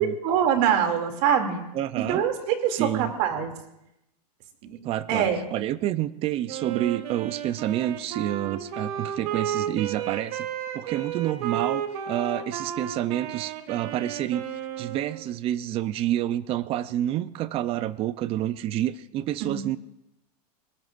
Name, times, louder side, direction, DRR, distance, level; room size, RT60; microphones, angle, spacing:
voice 1, 0.0-1.6 2.0-3.5 4.6-4.8 5.1-5.4 19.4-19.6, right 8 dB, 45° right, 4 dB, 2.6 m, -24 dB
voice 2, 1.7-2.2 2.7-3.1 4.8-10.5 10.7-14.4 14.8-19.8, right 12 dB, 30° right, 15 dB, 0.6 m, -28 dB
Wind instrument woodwind instrument, 6.5-15.3, right 9 dB, 65° right, 1.7 m, -33 dB
22.5 x 19.5 x 2.5 m, 0.86 s
supercardioid pair, 145°, 21 cm